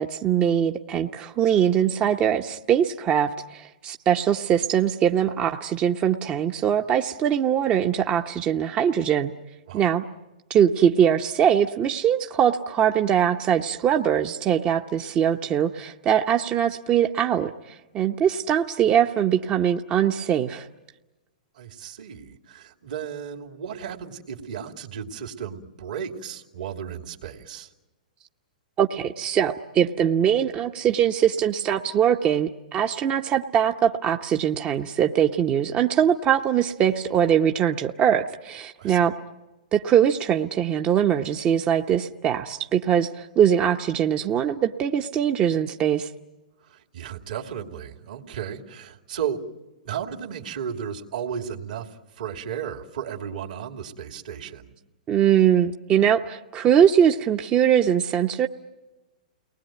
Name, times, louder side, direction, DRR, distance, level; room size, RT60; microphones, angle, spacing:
voice 1, 0.0-9.3 9.7-10.0 10.5-20.7 28.8-39.1 39.7-46.1 55.1-58.5, right 9 dB, 25° right, 4 dB, 0.9 m, -22 dB
voice 2, 21.6-27.7 38.8-39.1 46.6-49.4 49.8-51.9 52.2-54.7, right 8 dB, 70° right, 2 dB, 2.8 m, -34 dB
29.5 x 20.0 x 9.2 m, 1.1 s
hypercardioid pair, 125°, 4 cm